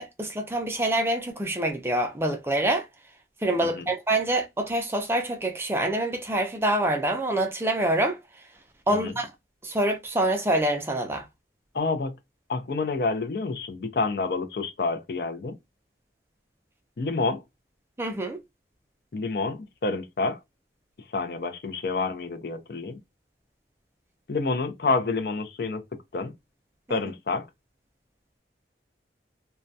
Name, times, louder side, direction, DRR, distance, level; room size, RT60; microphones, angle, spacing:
voice 1, 0.0-2.9 3.4-8.2 8.9-9.3 9.6-11.2 18.0-18.4 26.9-27.0, right 1 dB, 15° right, 0.4 m, -26 dB
voice 2, 11.7-12.1 12.5-15.5 17.0-17.4 19.1-20.4 21.1-23.0 24.3-25.8 26.1-26.3 26.9-27.5, left 3 dB, 60° left, 0.4 m, -28 dB
2.2 x 2.1 x 2.6 m
head